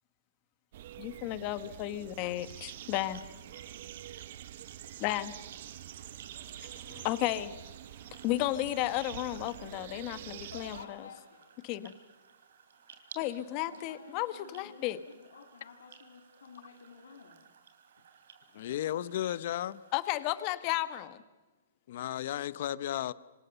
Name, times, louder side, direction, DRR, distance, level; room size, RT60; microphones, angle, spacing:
sound 1, 0.7-10.9, right 12 dB, 50° right, 1.0 m, -46 dB
voice 1, 1.0-3.2 5.0-5.3 6.6-7.5 8.2-11.1 11.6-11.9 13.1-15.0 19.9-21.2, left 15 dB, 30° left, 12 dB, 1.4 m, -33 dB
sound 2, 2.5-21.0, right 6 dB, 70° right, 3.7 m, -58 dB
voice 2, 10.5-11.5 13.7-17.5, left 5 dB, 90° left, 2 dB, 3.3 m, -52 dB
voice 3, 18.5-19.8 21.9-23.1, left 12 dB, 50° left, 18 dB, 0.9 m, -34 dB
26.5 x 26.0 x 7.0 m, 1.2 s
hypercardioid pair, 155°, 0 cm